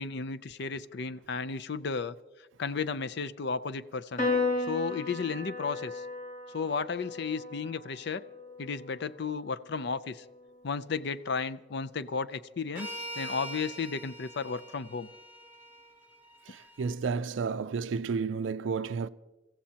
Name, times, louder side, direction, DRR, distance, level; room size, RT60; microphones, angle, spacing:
voice 1, 0.0-2.2 2.6-4.3 4.7-6.0 6.5-8.2 8.6-10.2 10.6-12.9 13.2-15.1, left 5 dB, 60° left, 0.5 m, -33 dB
Piano, 4.2-10.9, left 3 dB, 40° left, 4.4 m, -36 dB
sound 1, 12.7-16.9, equal, 10° right, 1.9 m, -43 dB
voice 2, 16.8-19.1, right 5 dB, 75° right, 0.4 m, -31 dB
27.0 x 15.0 x 2.9 m
head